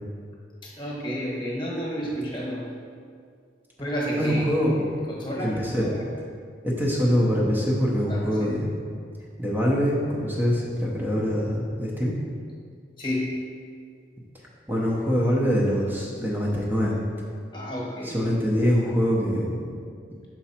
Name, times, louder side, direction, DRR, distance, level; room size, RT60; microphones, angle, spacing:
voice 1, 0.6-2.7 3.8-4.5 5.1-6.1 8.1-8.5 13.0-13.5 17.5-18.3, equal, 25° left, -4 dB, 1.3 m, -31 dB
voice 2, 4.2-4.7 5.4-5.9 6.6-8.7 9.4-12.1 14.7-17.0 18.0-19.6, equal, 10° right, -4 dB, 0.8 m, -24 dB
6.1 x 4.5 x 4.3 m, 2.2 s
head